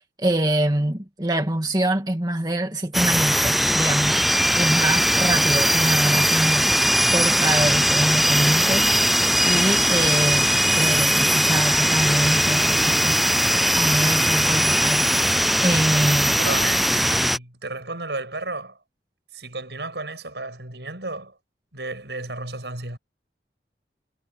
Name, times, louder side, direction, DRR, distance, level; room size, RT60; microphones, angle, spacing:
voice 1, 0.2-4.2 4.5-6.7 7.1-8.9 9.4-13.2 13.8-15.1 15.6-16.3, right 1 dB, 25° right, 2.0 m, -24 dB
sound 1, 2.9-17.4, equal, ahead, 0.3 m, -20 dB
voice 2, 15.7-18.8 19.3-21.4 21.7-23.0, right 2 dB, 80° right, 7.3 m, -33 dB
head